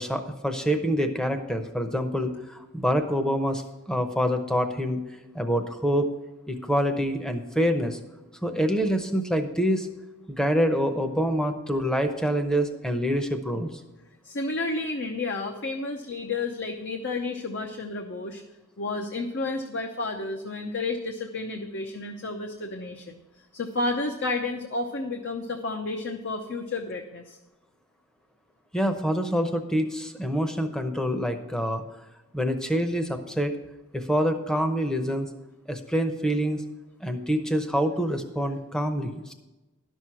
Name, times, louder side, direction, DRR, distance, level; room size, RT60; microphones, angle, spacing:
voice 1, 0.0-5.0 5.3-6.1 6.5-8.0 8.4-9.9 10.3-13.7 28.7-31.8 32.3-33.6 33.9-35.3 35.7-36.6 37.0-39.3, equal, 5° left, 7 dB, 0.7 m, -26 dB
voice 2, 14.2-18.4 18.8-23.2 23.5-27.4, left 3 dB, 55° left, 4 dB, 0.7 m, -31 dB
11.5 x 6.3 x 5.8 m, 1.1 s
head